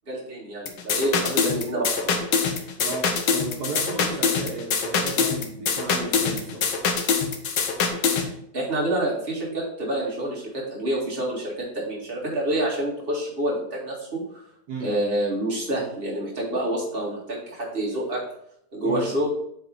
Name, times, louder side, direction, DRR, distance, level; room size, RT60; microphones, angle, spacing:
voice 1, 0.1-2.1 8.5-14.2 14.8-18.2 18.7-19.3, right 1 dB, 30° right, -4 dB, 2.3 m, -27 dB
sound 1, 0.7-8.3, left 5 dB, 80° left, 1.5 m, -24 dB
voice 2, 2.8-6.6 14.7-14.9 18.8-19.1, right 3 dB, 70° right, -2 dB, 1.6 m, -34 dB
8.7 x 3.6 x 4.1 m, 0.73 s
omnidirectional pair, 1.9 m